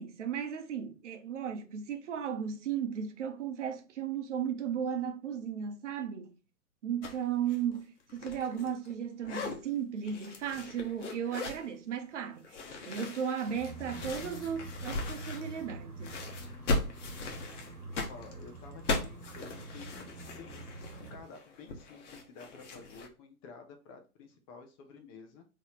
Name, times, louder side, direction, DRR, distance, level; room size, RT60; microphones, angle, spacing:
voice 1, 0.0-6.3 6.8-12.5 12.9-16.2, right 8 dB, 55° right, 0.9 m, -35 dB
woven nylon bag rustling and unzipping, 7.0-7.2 7.5-8.9 9.2-9.6 10.0-11.7 12.4-15.7 16.0-23.1, left 2 dB, 55° left, 1.2 m, -38 dB
sound 1, 13.5-21.2, right 2 dB, 90° right, 1.2 m, -45 dB
voice 2, 18.1-20.6 21.0-25.4, left 4 dB, 25° left, 0.7 m, -51 dB
3.9 x 3.1 x 3.8 m
figure-of-eight pair, 110°, 44 cm